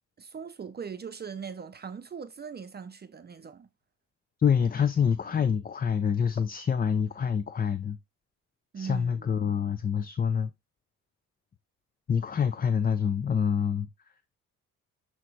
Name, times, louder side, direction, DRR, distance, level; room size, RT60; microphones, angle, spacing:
voice 1, 0.2-3.7 8.7-9.3, right 6 dB, 35° right, 0.7 m, -40 dB
voice 2, 4.4-8.0 8.8-10.5 12.1-13.9, left 7 dB, 30° left, 0.5 m, -26 dB
7.5 x 3.0 x 4.5 m
cardioid pair, 90°, 30 cm